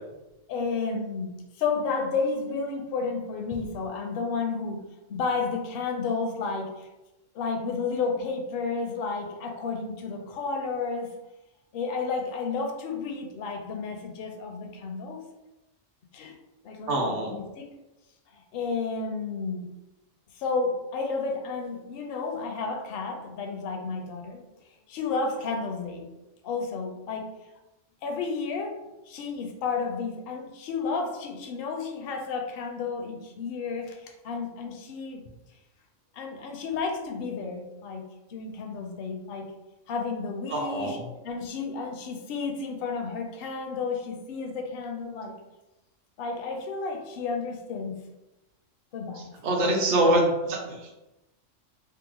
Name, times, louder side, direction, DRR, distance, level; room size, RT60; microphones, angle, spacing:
voice 1, 0.5-4.8 5.1-6.9 7.3-11.1 11.7-15.3 16.1-16.4 16.6-17.7 18.3-19.7 20.3-24.4 24.9-26.1 26.4-27.3 28.0-35.2 36.1-38.0 38.3-39.5 39.9-41.0 41.2-45.4 46.2-48.0 48.9-49.3 49.6-50.2, left 4 dB, 60° left, 3 dB, 0.6 m, -32 dB
voice 2, 16.9-17.3 40.5-41.0 49.4-50.9, right 1 dB, 65° right, 1 dB, 0.9 m, -24 dB
3.7 x 2.0 x 2.9 m, 1.0 s
omnidirectional pair, 1.3 m